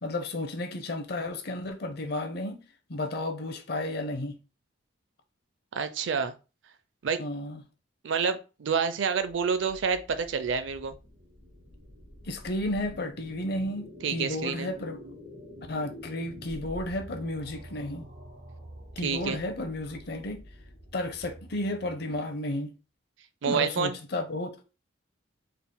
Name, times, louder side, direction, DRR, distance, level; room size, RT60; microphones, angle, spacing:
voice 1, 0.0-2.6 2.9-4.4 7.2-7.6 12.2-15.0 15.7-18.1 19.0-20.4 20.9-22.7 23.5-24.5, left 1 dB, 55° left, 0.6 m, -33 dB
voice 2, 5.7-6.3 7.0-7.2 8.0-10.9 14.0-14.7 19.0-19.4 23.4-23.9, right 6 dB, 70° right, 0.4 m, -28 dB
sound 1, 9.2-22.4, equal, 55° right, 1.2 m, -47 dB
3.9 x 3.7 x 2.2 m
head